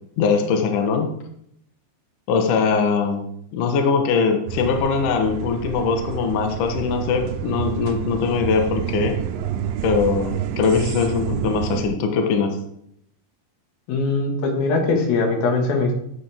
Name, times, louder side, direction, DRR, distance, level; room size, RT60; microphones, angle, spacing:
voice 1, 0.2-1.1 2.3-3.3 3.5-9.2 9.8-12.6, left 5 dB, 85° left, 5 dB, 1.8 m, -21 dB
sound 1, 4.5-11.9, right 9 dB, 85° right, 3.0 m, -28 dB
voice 2, 13.9-15.9, left 3 dB, 60° left, 2 dB, 3.1 m, -21 dB
13.0 x 8.2 x 3.5 m, 0.72 s
omnidirectional pair, 5.4 m